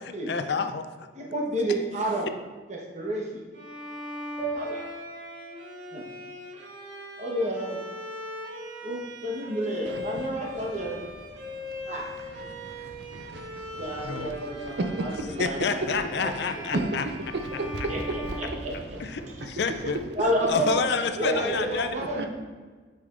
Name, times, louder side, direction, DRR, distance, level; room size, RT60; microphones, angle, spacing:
voice 1, 0.3-0.9 14.0-14.3 15.4-17.1 19.0-20.0 20.5-22.3, left 5 dB, 65° left, 9 dB, 0.4 m, -28 dB
voice 2, 1.1-2.3 2.7-3.4 4.5-4.9 5.9-6.0 7.2-7.8 8.8-11.0 11.9-12.1 13.8-16.3 16.5-16.9 17.9-19.0 20.1-20.8 21.2-22.3, right 1 dB, 40° right, -2 dB, 1.1 m, -30 dB
Bowed string instrument, 3.5-19.3, left 1 dB, 90° right, 1.1 m, -40 dB
sound 1, 4.4-8.6, right 3 dB, 30° left, 1.6 m, -41 dB
voice 3, 13.1-13.8 14.2-14.3 14.8-15.5 16.7-18.2 19.2-19.5 21.9-22.3, right 2 dB, 65° right, 5 dB, 0.5 m, -32 dB
8.3 x 4.9 x 2.5 m, 1.4 s
head